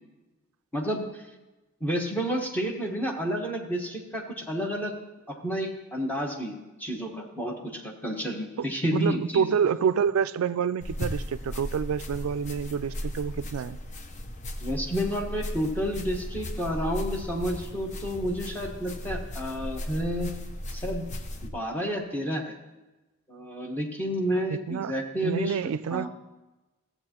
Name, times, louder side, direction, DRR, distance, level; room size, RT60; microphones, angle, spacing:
voice 1, 0.7-1.2 1.8-4.9 5.3-9.6 14.6-20.3 20.7-21.1 21.4-22.6 23.3-25.6 25.9-26.1, equal, 10° left, 1.2 m, -30 dB
voice 2, 8.6-13.8 24.3-24.9 25.2-26.1, right 7 dB, 80° right, 0.3 m, -28 dB
sound 1, 10.8-21.5, equal, 35° left, 0.6 m, -36 dB
14.5 x 8.0 x 2.9 m
head